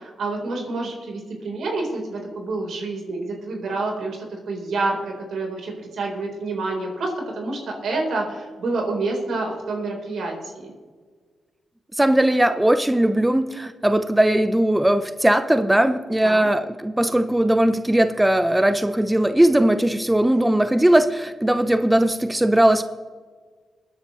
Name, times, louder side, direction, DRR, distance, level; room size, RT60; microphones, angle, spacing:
voice 1, 0.0-10.7 16.2-16.5, right 3 dB, 75° right, 0 dB, 3.8 m, -28 dB
voice 2, 12.0-22.8, right 1 dB, 10° right, 10 dB, 0.7 m, -19 dB
21.5 x 9.6 x 3.1 m, 1.5 s
cardioid pair, 55°, 0 cm